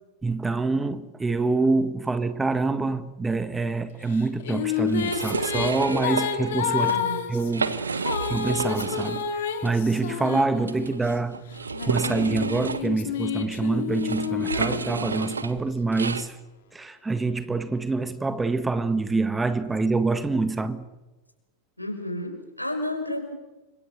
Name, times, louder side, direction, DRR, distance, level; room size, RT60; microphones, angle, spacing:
voice 1, 0.2-7.0 7.3-9.3 9.6-11.4 11.9-16.4 16.7-20.9, right 3 dB, 10° right, 1.8 m, -26 dB
Female singing, 4.1-11.1 11.7-15.5, left 8 dB, 60° left, 3.6 m, -30 dB
sound 1, 4.9-6.3 6.7-7.0 7.4-9.3 9.6-9.7 10.7-16.3, right 4 dB, 75° right, 1.5 m, -31 dB
voice 2, 6.9-7.2 21.8-23.3, left 1 dB, 85° left, 6.1 m, -31 dB
30.0 x 26.0 x 6.8 m
figure-of-eight pair, 90°, 0 cm